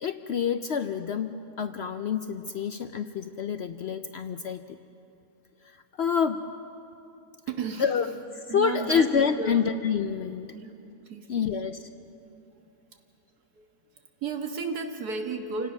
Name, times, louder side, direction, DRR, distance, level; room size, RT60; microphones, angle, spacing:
voice 1, 0.0-4.6 6.0-6.4 7.8-10.5 11.3-11.8, left 7 dB, 65° left, 9 dB, 0.6 m, -27 dB
voice 2, 7.5-8.0 8.5-9.1 9.4-9.6 10.5-10.7 11.0-11.5 12.6-13.0 13.5-13.7 13.9-15.7, right 4 dB, 75° right, 4 dB, 2.0 m, -34 dB
27.5 x 18.0 x 6.1 m, 2.9 s
omnidirectional pair, 1.7 m